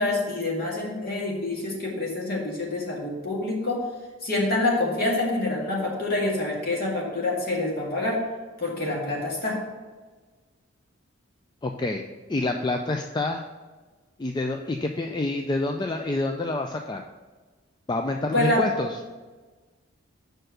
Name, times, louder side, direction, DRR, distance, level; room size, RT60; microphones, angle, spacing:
voice 1, 0.0-3.8 4.2-8.2 8.6-9.6 18.3-18.7, left 2 dB, 45° left, -3 dB, 2.0 m, -26 dB
voice 2, 11.6-12.0 12.3-13.4 14.2-17.0 17.9-18.9, left 2 dB, 20° left, 4 dB, 0.3 m, -27 dB
6.5 x 4.5 x 6.4 m, 1.3 s
head